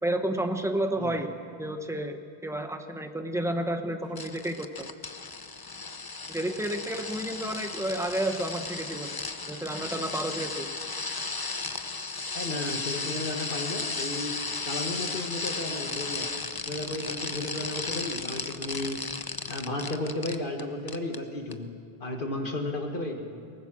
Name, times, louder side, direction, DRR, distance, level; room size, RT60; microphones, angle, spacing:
voice 1, 0.0-1.3 1.6-4.9 6.3-9.2 9.5-10.7, right 1 dB, 5° right, 6 dB, 1.0 m, -31 dB
sound 1, 4.2-20.6 20.9-21.2 21.5-21.6, left 3 dB, 25° left, 0.6 m, -35 dB
voice 2, 12.3-16.3 16.7-19.0 19.5-21.7 22.0-23.4, left 1 dB, 55° left, 3 dB, 1.7 m, -34 dB
22.5 x 19.0 x 6.2 m, 2.2 s
omnidirectional pair, 1.0 m